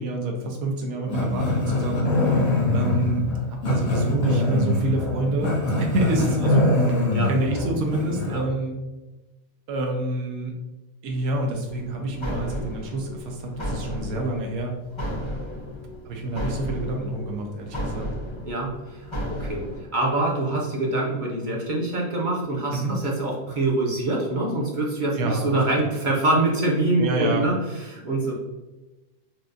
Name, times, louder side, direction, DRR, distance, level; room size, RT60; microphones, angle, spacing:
voice 1, 0.0-2.0 2.7-8.7 9.7-10.5 11.0-14.7 15.4-15.5 16.1-18.1 22.7-23.0 25.2-25.5 27.0-27.4, right 2 dB, 80° right, 1 dB, 1.2 m, -27 dB
Growling, 1.1-8.4, left 2 dB, 80° left, 1.9 m, -23 dB
voice 2, 2.2-2.5 7.1-7.3 8.3-8.4 18.5-28.3, right 2 dB, 40° right, -2 dB, 0.8 m, -25 dB
sound 1, 11.7-19.8, equal, 25° left, 0.6 m, -33 dB
5.9 x 2.3 x 2.5 m, 1.1 s
omnidirectional pair, 1.5 m